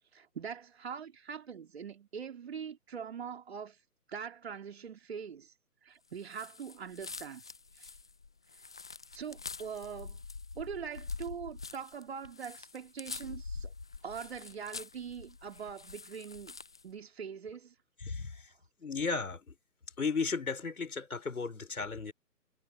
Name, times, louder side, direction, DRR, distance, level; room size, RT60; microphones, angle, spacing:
voice 1, 0.1-3.8 4.1-5.5 5.8-7.4 7.8-7.9 9.1-10.2 10.6-13.7 14.0-16.6 16.8-17.7, right 7 dB, 40° right, 3.9 m, -42 dB
sound 1, 6.3-16.9, left 4 dB, 5° left, 0.7 m, -45 dB
voice 2, 18.0-18.5 18.8-19.6 20.0-22.1, left 4 dB, 60° left, 5.6 m, -35 dB
figure-of-eight pair, 145°, 48 cm